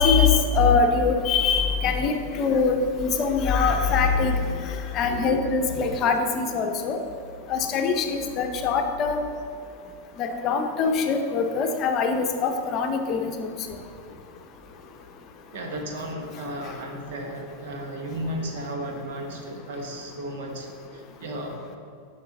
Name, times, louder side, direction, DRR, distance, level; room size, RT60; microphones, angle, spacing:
voice 1, 0.0-4.4 4.9-7.0 7.5-9.2 10.2-13.5, left 5 dB, 35° left, 5 dB, 0.7 m, -23 dB
voice 2, 15.5-21.6, right 1 dB, 55° right, 2 dB, 1.3 m, -34 dB
10.5 x 5.9 x 3.9 m, 2.3 s
figure-of-eight pair, 90°, 0 cm